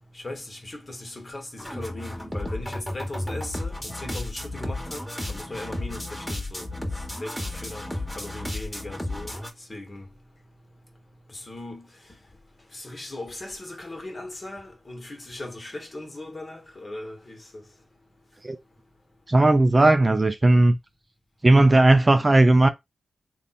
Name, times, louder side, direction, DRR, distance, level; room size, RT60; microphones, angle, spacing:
voice 1, 0.1-5.0 5.3-6.7 7.2-7.9 8.1-9.3 9.7-10.1 11.3-11.9 12.7-17.6, left 2 dB, 35° left, 1.4 m, -38 dB
sound 1, 1.6-9.5, left 1 dB, 10° left, 1.5 m, -33 dB
voice 2, 19.3-20.8 21.4-22.7, right 2 dB, 30° right, 0.6 m, -17 dB
3.4 x 2.4 x 4.2 m
cardioid pair, 60°, 0 cm